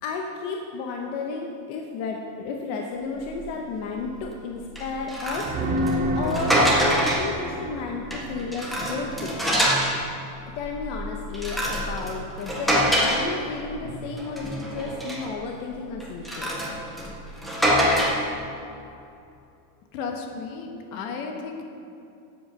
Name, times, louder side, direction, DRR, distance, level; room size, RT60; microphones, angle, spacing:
voice 1, 0.0-5.5 6.2-9.4 10.5-16.5, left 4 dB, 40° left, 1 dB, 0.8 m, -32 dB
sound 1, 3.3-3.5 4.0-4.2 4.7-7.4 7.9-10.0 10.5-13.8 14.2-15.3 16.0-18.3, equal, ahead, 0.3 m, -25 dB
sound 2, 5.4-9.2 13.8-13.9, right 1 dB, 20° right, 0.7 m, -29 dB
voice 2, 19.9-21.6, left 5 dB, 55° left, 3 dB, 1.6 m, -34 dB
11.5 x 7.8 x 5.7 m, 2.6 s
supercardioid pair, 175°, 46 cm